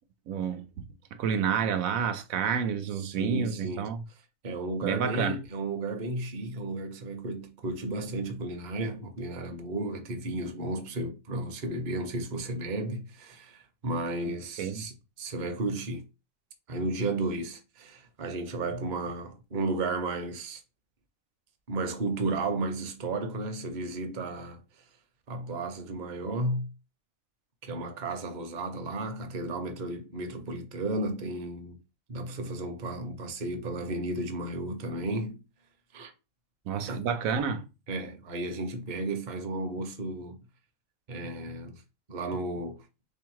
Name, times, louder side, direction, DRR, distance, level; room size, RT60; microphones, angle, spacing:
voice 1, 0.3-0.9 1.2-4.0 4.8-5.4 14.3-14.8 36.7-37.7, right 7 dB, 80° right, 1.0 m, -29 dB
voice 2, 3.0-3.8 4.4-16.0 16.7-20.6 21.7-24.6 25.3-26.7 27.6-31.8 32.1-35.4 35.9-36.1 36.9-37.0 37.9-40.4 41.1-41.8 42.1-42.8, right 2 dB, 40° right, 0.7 m, -33 dB
3.4 x 2.8 x 4.6 m
omnidirectional pair, 1.4 m